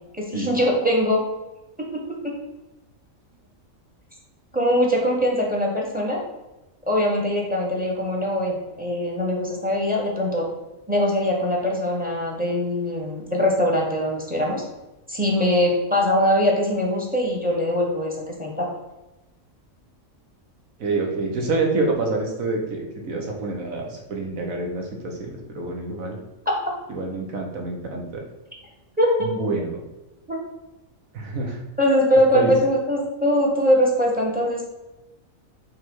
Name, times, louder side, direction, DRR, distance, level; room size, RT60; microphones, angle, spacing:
voice 1, 0.2-1.2 1.8-2.3 4.5-6.2 6.8-10.5 10.9-14.6 15.1-18.7 26.4-26.6 29.0-29.3 30.3-30.4 31.8-34.6, equal, 5° right, -1 dB, 1.4 m, -22 dB
voice 2, 20.8-26.2 26.9-28.2 29.2-29.8 31.1-31.6 32.3-32.5, right 3 dB, 80° right, 1 dB, 1.7 m, -27 dB
5.8 x 3.7 x 5.5 m, 1.0 s
omnidirectional pair, 1.4 m